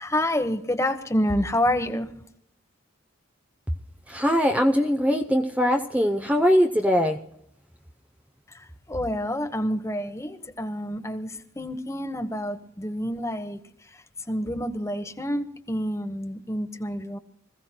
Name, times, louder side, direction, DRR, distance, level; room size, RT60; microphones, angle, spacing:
voice 1, 0.0-2.1 8.5-13.6 14.3-17.2, left 1 dB, 15° left, 9 dB, 1.0 m, -28 dB
voice 2, 4.1-7.2, equal, 5° right, 4 dB, 0.7 m, -21 dB
26.0 x 16.0 x 2.2 m, 0.74 s
head